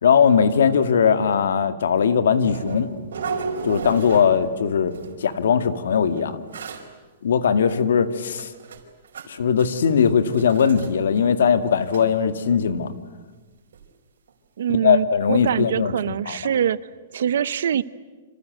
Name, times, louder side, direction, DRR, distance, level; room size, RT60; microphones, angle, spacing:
voice 1, 0.0-2.9 3.6-4.9 5.2-6.4 7.2-8.5 9.3-12.9 14.8-16.4, left 7 dB, 75° left, 10 dB, 2.0 m, -19 dB
sound 1, 2.4-4.6 4.9-5.4 6.2-6.3 6.5-6.8 7.7-7.8 8.3-9.3 9.6-9.8 10.3-10.9 11.2-11.3 11.6-12.1 13.7-13.8 14.3-14.4, right 5 dB, 90° right, 4.9 m, -33 dB
voice 2, 14.6-16.8 17.1-17.8, right 9 dB, 60° right, 17 dB, 0.8 m, -23 dB
27.5 x 27.0 x 8.0 m, 1.3 s
hypercardioid pair, 180°, 0 cm